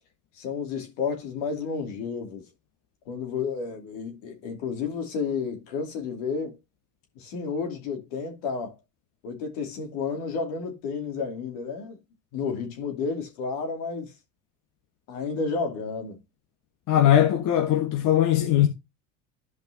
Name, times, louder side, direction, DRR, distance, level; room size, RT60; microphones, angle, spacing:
voice 1, 0.4-2.4 3.1-6.6 7.2-8.7 9.2-12.0 12.3-14.1 15.1-16.2, left 5 dB, 70° left, 2.7 m, -31 dB
voice 2, 16.9-18.7, left 11 dB, 50° left, 1.5 m, -20 dB
13.5 x 5.3 x 2.8 m
hypercardioid pair, 75°, 40 cm